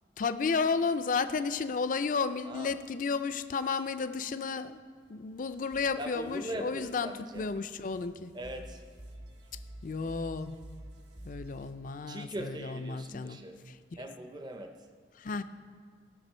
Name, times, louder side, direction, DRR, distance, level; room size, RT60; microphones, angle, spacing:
voice 1, 0.2-4.8 5.1-8.3 9.8-10.5 11.2-13.4 13.7-13.8 15.2-15.4, left 4 dB, 45° left, 11 dB, 0.4 m, -32 dB
sound 1, 5.4-11.7, right 1 dB, 65° right, 1.3 m, -50 dB
voice 2, 6.0-7.4 8.3-8.8 12.1-13.5 14.0-14.8, right 1 dB, 20° right, 6 dB, 0.5 m, -40 dB
17.5 x 6.0 x 4.4 m, 2.1 s
head